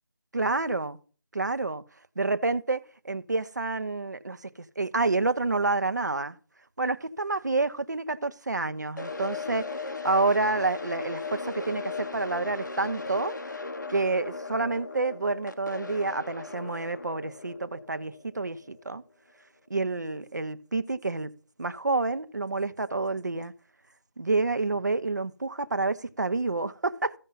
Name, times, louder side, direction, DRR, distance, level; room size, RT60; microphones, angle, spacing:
voice 1, 0.3-1.0 1.3-1.8 2.2-4.4 4.8-6.4 6.8-13.3 13.9-19.0 19.7-21.3 21.6-23.5 24.2-27.1, right 3 dB, 50° right, 0.7 m, -28 dB
sound 1, 9.0-19.0, left 4 dB, 50° left, 0.9 m, -37 dB
14.5 x 5.3 x 3.9 m
figure-of-eight pair, 175°, 12 cm